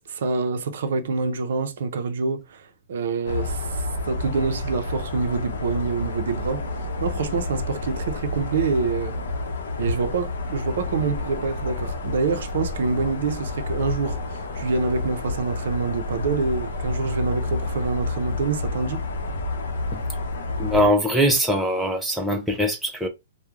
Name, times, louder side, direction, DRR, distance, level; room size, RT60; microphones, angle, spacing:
voice 1, 0.0-9.1 9.8-19.0, right 4 dB, 60° right, 0.5 m, -26 dB
sound 1, 3.2-20.9, left 2 dB, 70° left, 0.7 m, -29 dB
voice 2, 20.6-23.1, equal, ahead, 0.3 m, -21 dB
3.1 x 2.1 x 2.3 m
hypercardioid pair, 170°, 0 cm